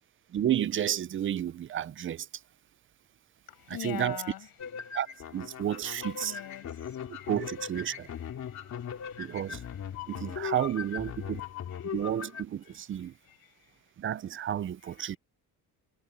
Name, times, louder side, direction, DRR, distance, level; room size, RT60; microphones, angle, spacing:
voice 1, 0.3-2.3 3.7-4.2 4.9-5.1 5.3-6.4 7.1-8.1 9.2-9.6 10.1-11.4 11.9-13.1 14.0-15.2, right 10 dB, 35° right, 0.5 m, -31 dB
voice 2, 3.5-4.9 6.0-7.6 7.9-10.7 11.3-11.4 11.7-12.0 12.7-13.8 14.8-15.2, left 12 dB, 70° left, 7.5 m, -47 dB
sound 1, 4.6-12.4, left 8 dB, 45° left, 3.6 m, -39 dB
cardioid pair, 175°, 37 cm